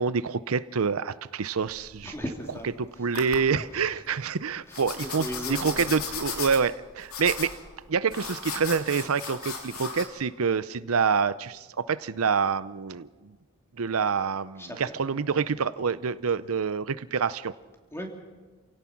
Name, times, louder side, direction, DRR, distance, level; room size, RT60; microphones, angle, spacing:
voice 1, 0.0-2.1 3.0-7.5 7.9-13.1 13.8-17.5, right 5 dB, 90° right, 15 dB, 0.6 m, -27 dB
sound 1, 1.6-2.7 3.1-3.6 4.7-10.0, left 5 dB, 90° left, 3.4 m, -36 dB
voice 2, 2.0-2.7 3.7-4.0 4.7-6.0 14.6-15.0 17.9-18.1, equal, 10° left, 2 dB, 3.0 m, -37 dB
28.5 x 17.0 x 5.9 m, 1.4 s
head